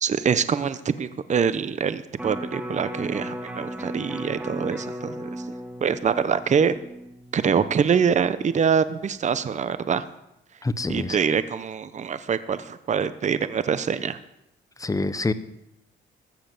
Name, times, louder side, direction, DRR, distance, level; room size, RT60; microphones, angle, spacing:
voice 1, 0.0-5.3 5.8-6.8 7.3-10.1 10.9-14.2, right 6 dB, 35° right, 13 dB, 0.8 m, -24 dB
Electric guitar, 2.2-8.4 8.8-8.9, equal, 5° right, 1.8 m, -36 dB
voice 2, 10.6-11.2 14.8-15.3, left 3 dB, 15° left, 12 dB, 0.9 m, -26 dB
14.0 x 7.6 x 7.7 m, 0.85 s
cardioid pair, 90°, 20 cm